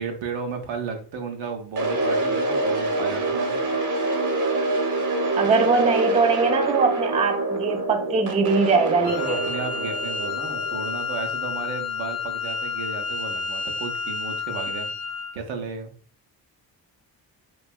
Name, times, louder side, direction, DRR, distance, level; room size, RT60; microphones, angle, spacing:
voice 1, 0.0-3.7 9.0-14.9 15.3-15.9, right 5 dB, 75° right, 4 dB, 0.7 m, -34 dB
sound 1, 1.8-11.8, right 2 dB, 40° right, 0.8 m, -26 dB
voice 2, 5.4-9.4, right 4 dB, 15° right, 5 dB, 0.4 m, -21 dB
Wind instrument woodwind instrument, 9.0-15.4, left 4 dB, 55° left, 0.5 m, -30 dB
2.7 x 2.3 x 2.3 m, 0.43 s
supercardioid pair, 50°, 45 cm